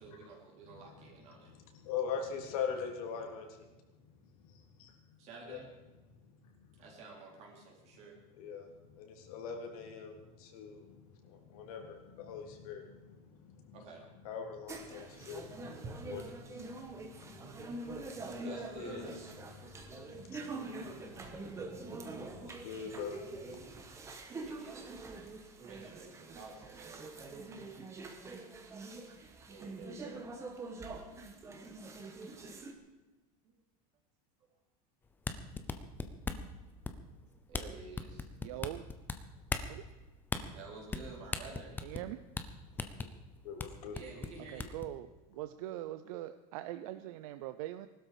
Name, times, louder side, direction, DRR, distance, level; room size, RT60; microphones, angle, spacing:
voice 1, 0.0-1.5 3.2-3.4 5.2-5.7 6.8-8.2 13.7-14.0 18.4-19.3 24.4-24.9 25.6-27.0 29.4-30.2 37.5-38.2 40.5-41.8 43.9-44.7, right 4 dB, 35° right, -1 dB, 3.4 m, -50 dB
voice 2, 0.6-3.7 4.0-5.2 5.5-5.6 6.2-6.8 8.3-13.8 14.2-19.2 19.5-23.7 43.0-43.1 43.4-44.0, left 6 dB, 70° left, 3 dB, 3.3 m, -44 dB
sound 1, 14.7-32.7, right 3 dB, 15° right, 1.4 m, -45 dB
sound 2, 35.1-36.5 36.8-37.2 37.5-37.7 38.0-39.2 39.5-39.7 40.3-40.4 40.9-41.1 41.3-42.1 42.4-42.5 42.8-43.1 43.6-43.7 43.9-44.9, left 4 dB, 10° left, 0.7 m, -37 dB
voice 3, 38.4-38.9 39.7-39.8 41.8-42.2 44.5-47.9, right 14 dB, 65° right, 11 dB, 0.7 m, -42 dB
19.5 x 12.5 x 5.0 m, 1.1 s
supercardioid pair, 170°, 19 cm